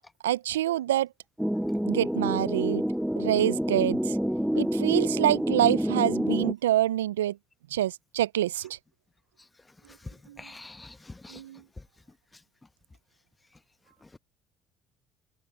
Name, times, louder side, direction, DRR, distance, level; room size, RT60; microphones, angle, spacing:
voice 1, 0.2-1.1 1.9-2.8 3.2-4.2 4.6-7.4 7.7-8.8 10.3-10.4 11.3-11.6, right 13 dB, 85° right, 0.4 m, -26 dB
sound 1, 1.4-6.5, equal, ahead, 0.8 m, -27 dB
voice 2, 10.0-11.4 14.0-14.2, left 2 dB, 20° left, 1.2 m, -45 dB
open air
hypercardioid pair, 60°, 0 cm